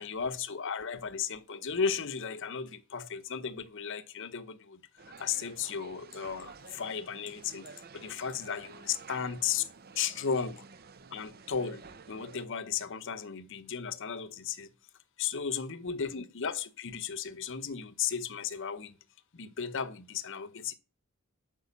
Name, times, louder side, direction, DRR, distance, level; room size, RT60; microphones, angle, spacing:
voice 1, 0.0-4.8 5.2-9.7 10.0-10.6 11.1-11.8 12.1-14.7 15.2-18.9 19.3-20.7, left 7 dB, 60° left, 0.8 m, -35 dB
sound 1, 5.0-12.5, right 5 dB, 45° right, 0.7 m, -51 dB
8.3 x 6.2 x 8.2 m
head